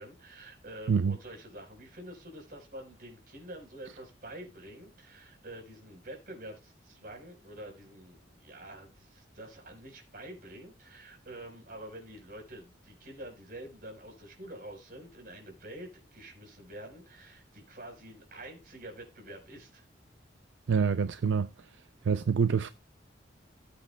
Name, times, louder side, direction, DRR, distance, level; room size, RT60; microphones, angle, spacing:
voice 1, 0.0-19.9, right 1 dB, 50° right, 4.3 m, -47 dB
voice 2, 20.7-21.5 22.0-22.7, right 6 dB, 75° right, 0.4 m, -26 dB
18.0 x 8.0 x 2.2 m
head